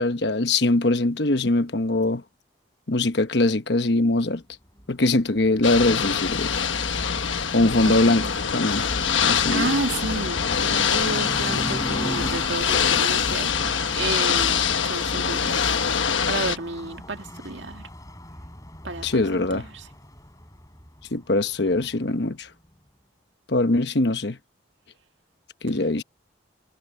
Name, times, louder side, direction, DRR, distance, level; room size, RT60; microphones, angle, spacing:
voice 1, 0.0-2.2 2.9-4.4 4.9-6.5 6.9-7.2 7.5-8.9 9.2-9.7 19.0-19.7 21.1-22.5 23.5-24.4 25.6-26.0, left 2 dB, 60° left, 1.1 m, -22 dB
sound 1, 4.8-22.2, left 1 dB, 15° left, 7.2 m, -39 dB
Ocean / Boat Water vehicle, 5.6-16.6, left 7 dB, 80° left, 1.2 m, -24 dB
voice 2, 7.8-8.3 9.5-15.8 16.3-17.9 18.8-19.8, right 2 dB, 70° right, 1.9 m, -31 dB
head